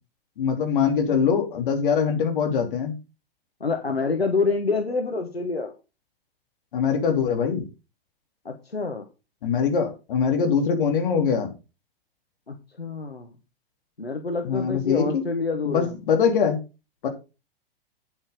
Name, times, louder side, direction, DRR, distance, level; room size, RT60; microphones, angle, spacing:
voice 1, 0.4-2.9 6.7-7.6 9.4-11.5 14.4-15.2 15.6-16.6 17.0-17.1, left 6 dB, 60° left, 4 dB, 3.0 m, -23 dB
voice 2, 3.6-5.7 8.4-9.0 12.5-13.3 14.0-15.9, left 4 dB, 90° left, 5 dB, 1.3 m, -27 dB
8.8 x 8.0 x 5.1 m, 0.30 s
figure-of-eight pair, 100°, 30 cm